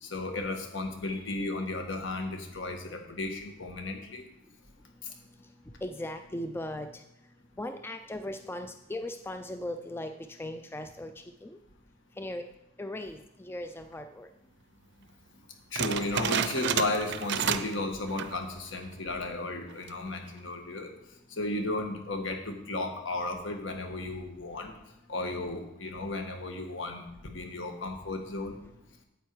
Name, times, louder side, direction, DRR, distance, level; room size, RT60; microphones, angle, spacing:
voice 1, 0.0-4.2 15.7-20.9 21.3-24.7 25.1-28.6, left 2 dB, 65° left, 4 dB, 1.6 m, -34 dB
voice 2, 5.8-7.0 7.6-11.1 11.4-11.6 12.2-12.5 12.8-14.3, left 1 dB, 10° left, 8 dB, 0.4 m, -38 dB
sound 1, 15.8-17.8 18.1-18.4 18.9-19.0 19.7-20.1, right 7 dB, 60° right, 0.6 m, -30 dB
9.1 x 8.1 x 4.7 m, 0.91 s
head